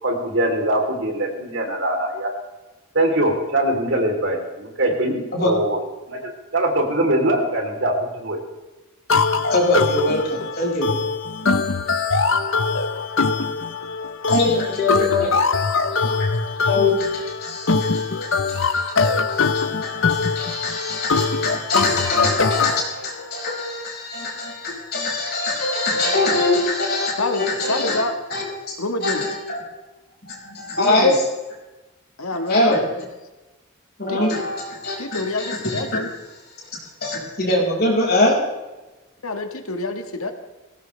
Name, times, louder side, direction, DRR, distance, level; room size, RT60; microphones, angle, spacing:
voice 1, 0.0-2.3 2.9-5.8 6.1-8.4, right 1 dB, 60° right, 1 dB, 3.6 m, -22 dB
sound 1, 9.1-22.8, left 4 dB, 65° left, 1.0 m, -22 dB
voice 2, 9.5-10.9 14.3-15.5 15.9-16.3 16.6-28.0 28.3-29.6 30.2-31.1 32.5-32.8 34.0-36.0 37.0-38.4, left 2 dB, 45° left, -3 dB, 5.6 m, -23 dB
voice 3, 27.2-28.1 28.8-29.2 30.8-31.2 32.2-32.8 34.1-34.2 35.0-36.1 39.2-40.3, left 2 dB, 85° left, 6 dB, 1.6 m, -26 dB
21.5 x 17.5 x 3.4 m, 1.1 s
head